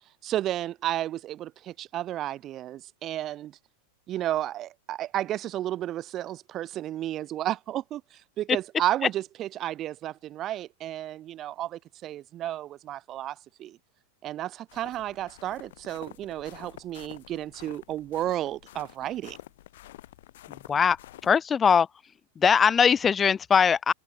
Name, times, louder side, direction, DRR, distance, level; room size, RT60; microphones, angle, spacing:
voice 1, 0.2-3.5 4.1-13.8 14.2-19.4, right 13 dB, 30° right, 0.5 m, -32 dB
sound 1, 14.7-21.4, left 14 dB, 55° left, 2.7 m, -49 dB
voice 2, 20.5-21.0 21.2-21.9 22.4-23.9, left 7 dB, 20° left, 0.6 m, -21 dB
figure-of-eight pair, 90°, 0 cm